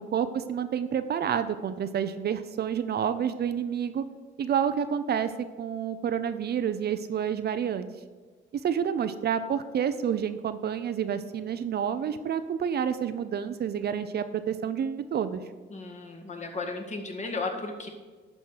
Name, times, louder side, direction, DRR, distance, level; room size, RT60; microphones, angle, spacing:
voice 1, 0.1-4.0 4.4-5.3 5.6-7.9 8.5-15.4, right 8 dB, 55° right, 10 dB, 0.6 m, -29 dB
voice 2, 15.7-17.9, left 3 dB, 35° left, 2 dB, 1.8 m, -34 dB
11.5 x 4.5 x 6.5 m, 1.4 s
cardioid pair, 90°, 20 cm